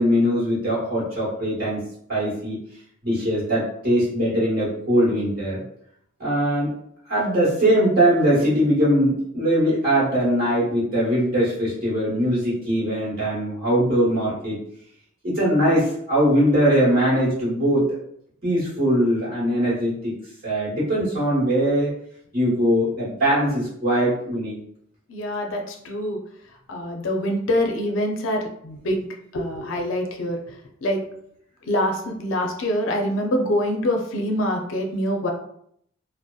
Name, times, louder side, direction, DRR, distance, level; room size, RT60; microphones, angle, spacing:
voice 1, 0.0-1.8 2.1-2.6 3.0-5.6 6.2-6.7 7.1-14.5 15.2-17.9 18.4-20.2 20.4-21.9 22.3-24.5, equal, 50° right, -6 dB, 1.1 m, -21 dB
voice 2, 25.1-26.2 26.7-29.0 29.3-30.4 30.8-31.0 31.7-35.3, equal, 75° left, 2 dB, 0.5 m, -25 dB
2.6 x 2.0 x 2.3 m, 0.69 s
head